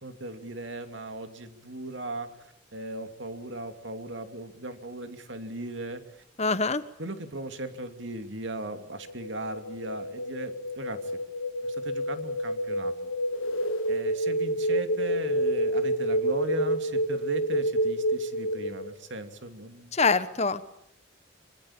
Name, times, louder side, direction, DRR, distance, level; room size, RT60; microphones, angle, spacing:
voice 1, 0.0-6.2 6.5-6.6 7.0-11.2 11.6-13.1 13.9-20.0, right 2 dB, 65° right, 8 dB, 2.8 m, -38 dB
voice 2, 6.4-6.9 19.9-20.6, left 4 dB, 35° left, 13 dB, 1.2 m, -24 dB
sound 1, 9.0-18.9, right 1 dB, 90° left, 1.7 m, -29 dB
26.0 x 24.0 x 8.8 m, 0.78 s
head